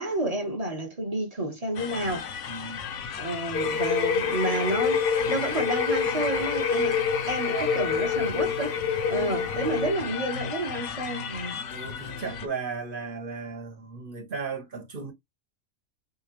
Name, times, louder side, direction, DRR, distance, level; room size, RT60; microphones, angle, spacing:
voice 1, 0.0-2.5 3.2-7.0 7.3-8.8 9.1-11.6, right 1 dB, 30° right, 1.5 m, -30 dB
sound 1, 1.7-12.5, left 6 dB, 75° left, 1.1 m, -35 dB
voice 2, 2.5-2.9 7.4-7.9 9.9-10.3 11.7-15.1, right 5 dB, 45° right, 1.4 m, -36 dB
sound 2, 3.5-9.9, left 6 dB, 50° left, 0.9 m, -27 dB
6.4 x 2.7 x 3.1 m
omnidirectional pair, 1.3 m